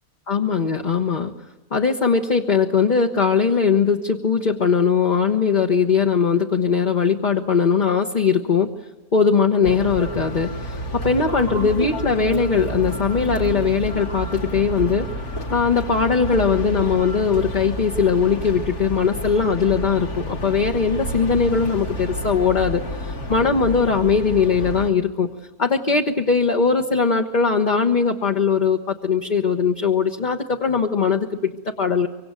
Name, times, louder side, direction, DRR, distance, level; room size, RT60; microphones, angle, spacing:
voice 1, 0.3-1.3 1.7-8.7 9.1-15.1 15.5-25.3 25.6-32.1, left 5 dB, 35° left, 2 dB, 1.1 m, -20 dB
sound 1, 9.6-24.9, equal, 75° left, 3.1 m, -30 dB
25.0 x 24.5 x 9.0 m, 1.1 s
omnidirectional pair, 1.6 m